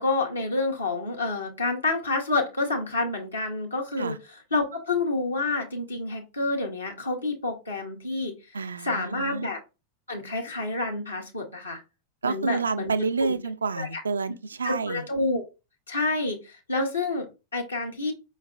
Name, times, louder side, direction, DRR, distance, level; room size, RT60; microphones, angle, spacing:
voice 1, 0.0-8.3 8.8-9.6 10.1-11.8 12.2-13.3 13.7-14.0 14.6-15.4 15.9-18.1, left 3 dB, 80° left, 0.8 m, -28 dB
voice 2, 8.5-9.5 12.2-15.0, right 4 dB, 75° right, 0.3 m, -29 dB
4.9 x 3.1 x 2.3 m
figure-of-eight pair, 90°, 0 cm